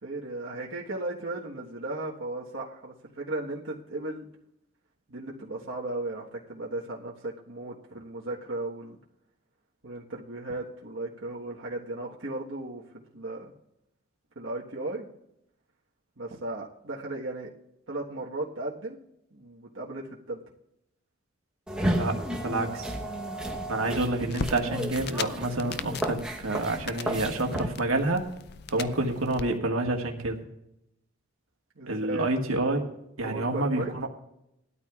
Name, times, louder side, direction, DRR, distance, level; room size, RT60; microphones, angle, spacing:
voice 1, 0.0-4.3 5.1-9.0 9.8-13.5 14.3-15.1 16.2-17.5 17.9-19.0 19.3-20.4 28.7-29.0 31.7-32.3 33.2-33.9, right 2 dB, 70° right, -3 dB, 1.4 m, -36 dB
sound 1, 21.7-27.7, right 1 dB, 5° right, 1.0 m, -33 dB
voice 2, 21.8-22.9 23.7-28.3 28.7-30.4 31.9-32.9 33.2-34.1, right 2 dB, 90° right, 2 dB, 1.6 m, -28 dB
sound 2, 24.3-29.4, left 6 dB, 50° left, 0.4 m, -39 dB
19.5 x 12.5 x 2.4 m, 0.82 s
head